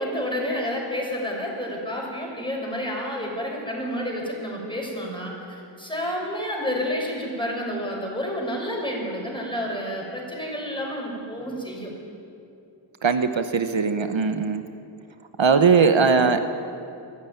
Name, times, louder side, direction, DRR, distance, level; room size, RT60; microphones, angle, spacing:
voice 1, 0.0-11.9, equal, 10° left, -1 dB, 6.4 m, -30 dB
voice 2, 13.0-14.6 15.4-16.4, right 5 dB, 80° right, 8 dB, 1.1 m, -19 dB
22.0 x 13.5 x 9.4 m, 2.6 s
wide cardioid pair, 50°, 45 cm